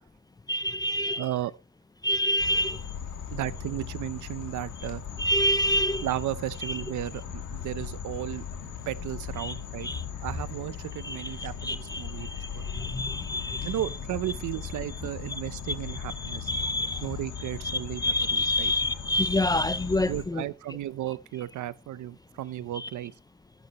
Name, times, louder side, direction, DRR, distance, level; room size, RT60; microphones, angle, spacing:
voice 1, 0.5-1.3 2.0-2.8 5.2-6.1 6.7-6.8 9.4-9.6 9.8-10.0 11.0-13.8 16.2-17.0 17.6-20.4 22.7-22.9, left 1 dB, 15° left, 0.5 m, -28 dB
voice 2, 1.2-1.5 3.3-5.0 6.0-8.4 8.9-9.9 10.2-12.3 12.5-12.6 13.6-16.5 17.0-18.7 20.0-23.1, right 13 dB, 75° right, 0.8 m, -34 dB
sound 1, 2.4-20.2, left 7 dB, 80° left, 2.7 m, -38 dB
12.5 x 11.0 x 3.0 m
cardioid pair, 150°, 30 cm